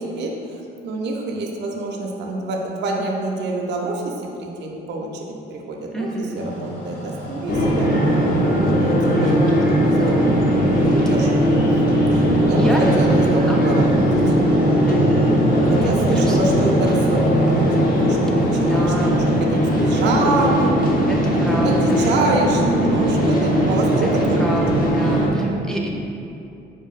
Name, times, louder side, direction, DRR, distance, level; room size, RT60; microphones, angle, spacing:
voice 1, 0.0-7.9 8.5-9.0 9.9-10.4 10.8-14.4 15.7-17.6 17.9-20.9 21.3-21.4 21.6-24.5, right 2 dB, 65° right, -1 dB, 0.5 m, -26 dB
voice 2, 5.9-6.4 9.1-9.5 9.9-10.4 12.1-12.2 12.6-12.9 13.5-13.9 14.8-15.4 15.8-16.4 18.3-19.2 21.1-22.1 24.0-24.1 24.4-25.9, equal, 5° left, -2 dB, 0.5 m, -29 dB
sound 1, 6.3-19.2, equal, 70° left, 1.2 m, -35 dB
sound 2, 7.5-25.3, equal, 45° left, 0.6 m, -18 dB
4.7 x 2.5 x 2.4 m, 2.7 s
cardioid pair, 90°, 20 cm